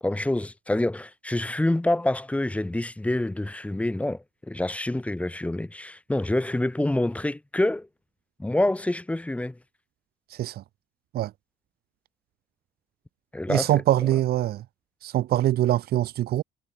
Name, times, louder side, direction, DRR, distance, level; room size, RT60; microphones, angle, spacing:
voice 1, 0.0-7.9 8.4-9.6 13.3-13.7, left 1 dB, 10° left, 1.7 m, -27 dB
voice 2, 10.3-10.6 11.1-11.3 13.5-14.6 15.0-16.4, right 13 dB, 65° right, 1.5 m, -23 dB
cardioid pair, 110°, 17 cm